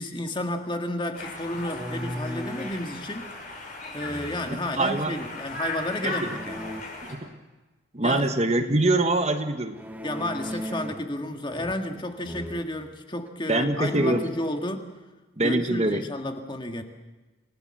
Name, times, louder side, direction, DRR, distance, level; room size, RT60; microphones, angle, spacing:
voice 1, 0.0-3.3 3.9-6.7 8.0-8.3 10.0-14.9 15.4-16.8, left 1 dB, 25° left, 5 dB, 1.8 m, -31 dB
Conversation, 1.1-7.1, left 2 dB, 40° left, 5.9 m, -37 dB
sound 1, 1.5-2.8 4.0-4.7 6.2-6.8 9.7-11.1 11.5-12.0 12.2-12.7 13.3-13.4 13.7-14.5, equal, 10° right, 1.3 m, -37 dB
voice 2, 4.8-5.2 6.0-6.2 7.0-7.4 7.9-9.8 13.5-14.2 15.4-16.0, right 2 dB, 35° right, 7 dB, 1.3 m, -24 dB
28.5 x 18.5 x 7.7 m, 1.2 s
head